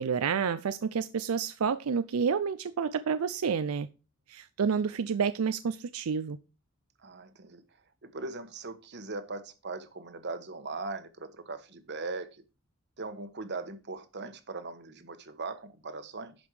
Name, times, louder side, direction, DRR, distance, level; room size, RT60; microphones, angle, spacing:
voice 1, 0.0-3.9 4.3-6.4, right 6 dB, 85° right, 0.5 m, -29 dB
voice 2, 7.0-7.6 8.0-12.4 13.0-16.3, right 3 dB, 55° right, 1.3 m, -39 dB
10.5 x 5.3 x 4.8 m
head